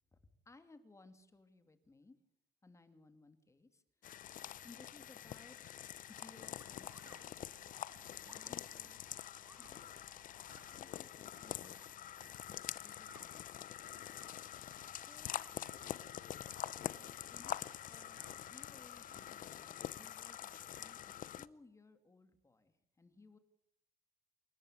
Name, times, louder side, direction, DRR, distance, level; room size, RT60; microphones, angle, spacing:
voice 1, 0.5-2.2 2.6-3.8 4.6-7.5 8.2-9.0 9.6-10.1 10.7-11.9 12.5-13.9 14.9-15.7 16.9-17.6 17.9-23.4, left 3 dB, 15° left, 9 dB, 2.5 m, -62 dB
sound 1, 4.0-21.5, left 11 dB, 55° left, 0.8 m, -46 dB
sound 2, 6.5-19.8, right 9 dB, 70° right, 2.6 m, -70 dB
sound 3, 6.6-7.2 8.2-8.5 9.4-9.7 10.5-10.7 11.6-11.9 12.9-13.3 14.0-14.3 15.1-15.6 16.4-16.8 18.0-18.3, right 2 dB, 20° right, 7.4 m, -63 dB
28.5 x 12.0 x 8.5 m, 0.81 s
cardioid pair, 110°, 17 cm